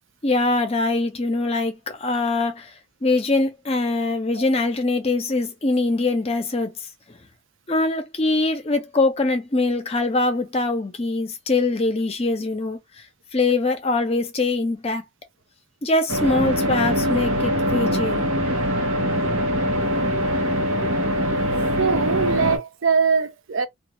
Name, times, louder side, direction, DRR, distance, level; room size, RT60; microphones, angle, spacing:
voice 1, 0.2-2.7 3.0-6.7 7.7-12.8 13.3-15.0 15.8-18.2, left 2 dB, 30° left, 0.6 m, -23 dB
sound 1, 16.1-22.6, equal, 85° right, 0.9 m, -22 dB
voice 2, 21.3-23.7, right 6 dB, 70° right, 0.5 m, -23 dB
2.4 x 2.4 x 3.0 m
head